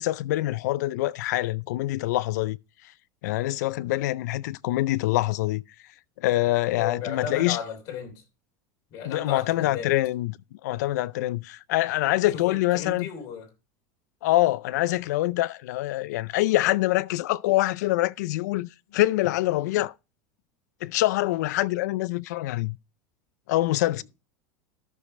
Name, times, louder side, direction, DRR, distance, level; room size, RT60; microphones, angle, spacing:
voice 1, 0.0-2.6 3.2-5.6 6.2-7.6 9.1-10.4 10.6-13.1 14.2-19.9 20.8-22.8 23.5-24.0, left 17 dB, 80° left, 0.4 m, -25 dB
voice 2, 6.7-8.1 8.9-9.9 12.4-13.5, left 7 dB, 40° left, 3.1 m, -35 dB
13.0 x 6.6 x 3.3 m
supercardioid pair, 160°, 9 cm